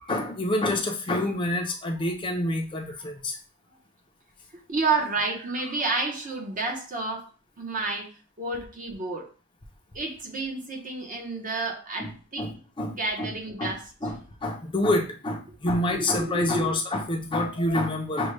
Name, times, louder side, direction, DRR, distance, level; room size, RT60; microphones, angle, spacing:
voice 1, 0.1-3.4 12.0-13.7 14.0-18.3, left 1 dB, 25° left, 0.5 m, -28 dB
voice 2, 4.7-7.3 7.6-8.1 8.4-9.3 9.9-12.5 12.9-13.9 15.8-16.8, right 3 dB, 40° right, 0.9 m, -30 dB
6.1 x 2.2 x 3.2 m
head